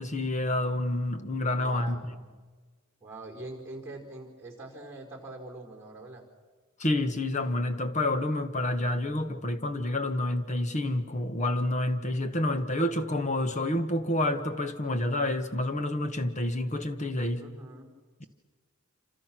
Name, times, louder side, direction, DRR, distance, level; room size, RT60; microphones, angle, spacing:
voice 1, 0.0-2.1 6.8-17.4, left 1 dB, 35° left, 1.4 m, -28 dB
voice 2, 1.5-2.3 3.0-6.3 17.4-17.9, right 2 dB, 15° right, 4.8 m, -43 dB
27.5 x 27.0 x 6.2 m
head